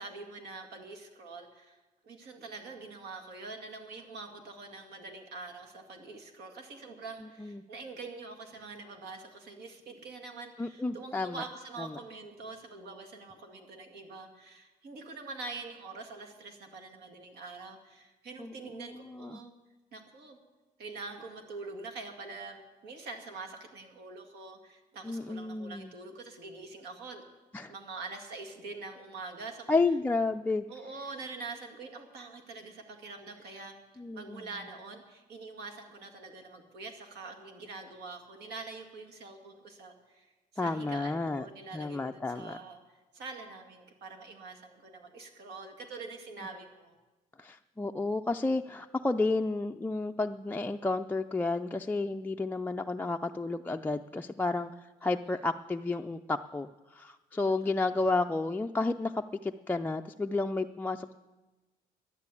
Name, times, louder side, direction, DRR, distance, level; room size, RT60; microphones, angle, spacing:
voice 1, 0.0-1.8 2.0-19.5 19.9-20.4 20.8-27.2 27.7-29.7 30.7-33.7 34.1-40.3 40.6-42.8 43.1-46.9 57.5-57.6, right 3 dB, 75° right, 4 dB, 2.2 m, -45 dB
voice 2, 7.2-7.6 10.6-11.4 11.8-11.9 18.4-19.4 25.0-25.9 27.5-27.7 29.7-30.7 34.0-34.4 40.6-41.5 41.7-42.6 47.4-61.1, left 3 dB, 10° left, 3 dB, 0.4 m, -31 dB
11.5 x 9.8 x 8.4 m, 1.2 s
cardioid pair, 110°, 17 cm